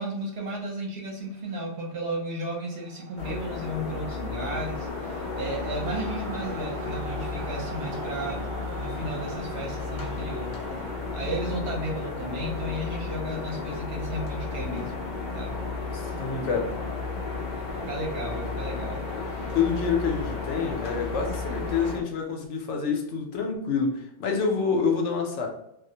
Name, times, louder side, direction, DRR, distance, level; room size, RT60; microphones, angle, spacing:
voice 1, 0.0-10.5 11.1-15.0 15.3-15.6 17.8-19.0 19.4-19.5, right 1 dB, 60° right, -3 dB, 0.9 m, -34 dB
sound 1, 1.3-11.2, right 3 dB, 40° right, 0.4 m, -44 dB
sound 2, 3.2-22.0, left 3 dB, 50° left, 0.6 m, -33 dB
voice 2, 15.9-16.6 19.5-25.5, left 5 dB, 75° left, 2 dB, 0.9 m, -27 dB
2.3 x 2.0 x 2.7 m, 0.82 s
omnidirectional pair, 1.2 m